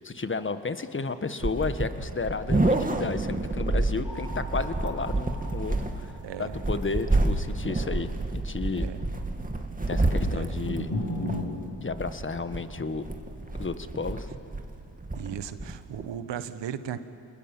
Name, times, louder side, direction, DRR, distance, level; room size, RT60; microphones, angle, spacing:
voice 1, 0.0-6.1 6.4-8.9 9.9-10.9 11.8-13.1 13.6-14.3, left 4 dB, 25° left, 10 dB, 1.5 m, -32 dB
sound 1, 1.4-16.2, right 2 dB, 20° right, 2.3 m, -29 dB
sound 2, 4.0-10.2 10.7-11.4, left 1 dB, 50° left, 7.0 m, -38 dB
voice 2, 15.1-17.0, right 9 dB, 70° right, 12 dB, 1.4 m, -36 dB
28.0 x 20.0 x 7.5 m, 2.6 s
supercardioid pair, 55°, 45 cm